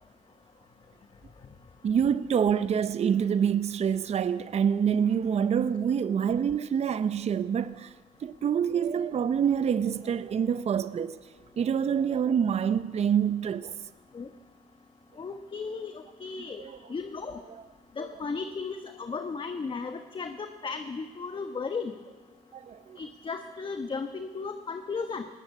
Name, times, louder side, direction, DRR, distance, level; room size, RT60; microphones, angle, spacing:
voice 1, 1.8-7.9 8.2-11.1 11.6-13.7 16.6-16.8 22.5-23.0, right 8 dB, 50° right, 0.7 m, -26 dB
voice 2, 15.2-16.6 16.9-17.4 18.0-21.9 23.0-25.3, left 4 dB, 35° left, 1.2 m, -35 dB
20.0 x 17.5 x 8.3 m
cardioid pair, 100°, 15 cm